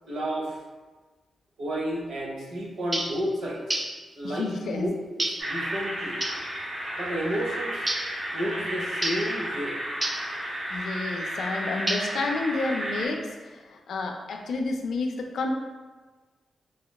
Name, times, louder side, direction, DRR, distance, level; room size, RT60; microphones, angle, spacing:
voice 1, 0.1-0.6 1.6-3.8 4.1-4.9 5.2-6.2 7.0-7.9 8.3-9.8, equal, 90° right, -2 dB, 0.6 m, -31 dB
sound 1, 2.9-3.2 3.7-4.0 5.2-5.5 6.2-6.5 7.9-8.2 9.0-9.3 10.0-10.3 11.9-12.3, right 1 dB, 25° right, 0.3 m, -29 dB
voice 2, 4.2-4.9 10.7-15.5, left 3 dB, 85° left, 3 dB, 0.4 m, -30 dB
sound 2, 5.4-13.1, equal, 60° right, 1.2 m, -33 dB
4.6 x 2.1 x 2.3 m, 1.3 s
cardioid pair, 65°, 0 cm